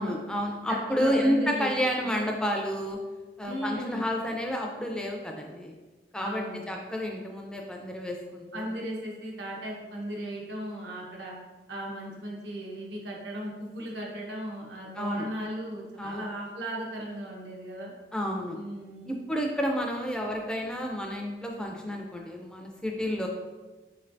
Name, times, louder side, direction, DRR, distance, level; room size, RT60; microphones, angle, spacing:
voice 1, 0.0-3.0 3.4-5.7 6.1-8.7 15.0-15.3 16.0-16.2 18.1-18.6 19.0-23.3, equal, 5° left, 1 dB, 0.3 m, -30 dB
voice 2, 0.7-1.7 3.4-4.1 6.2-6.6 8.5-11.3 11.7-17.9 18.5-19.2, right 1 dB, 90° right, -2 dB, 1.0 m, -36 dB
4.4 x 3.2 x 2.5 m, 1.2 s
head